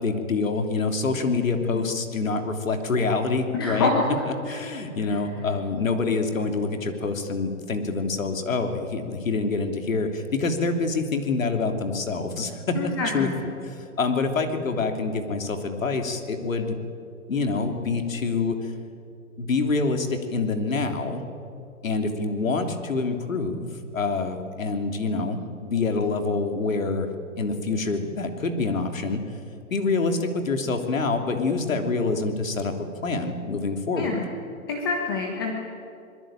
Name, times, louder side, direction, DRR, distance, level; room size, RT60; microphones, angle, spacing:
voice 1, 0.0-3.9 4.3-16.7 17.3-18.7 19.4-21.2 21.8-27.1 27.4-29.2 29.7-32.7 33.0-34.2, left 3 dB, 65° left, 5 dB, 3.3 m, -26 dB
voice 2, 3.5-4.0 12.7-13.4 34.0-34.3 34.7-35.5, left 4 dB, 15° left, 0 dB, 1.3 m, -26 dB
25.5 x 21.5 x 9.0 m, 2.5 s
hypercardioid pair, 175°, 43 cm